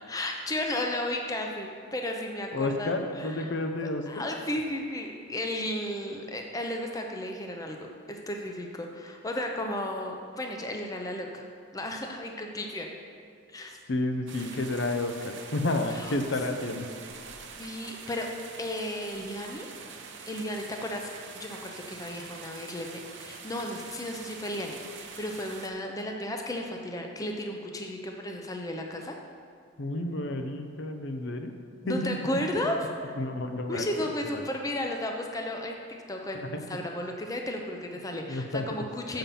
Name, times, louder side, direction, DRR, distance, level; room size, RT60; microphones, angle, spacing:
voice 1, 0.1-3.5 4.1-11.4 11.7-12.9 13.5-13.8 15.9-16.1 17.6-18.3 18.6-19.7 20.3-29.2 31.8-32.8 33.0-33.1 33.7-35.8 36.1-39.2, left 1 dB, 15° left, 2 dB, 0.6 m, -34 dB
voice 2, 2.5-4.2 13.9-16.9 29.8-31.5 31.9-32.2 33.2-34.1 34.3-34.4 36.3-36.6 38.3-38.6, left 2 dB, 60° left, 6 dB, 0.6 m, -31 dB
sound 1, 14.3-25.7, right 5 dB, 65° right, 0.7 m, -45 dB
7.1 x 5.8 x 6.9 m, 2.2 s
head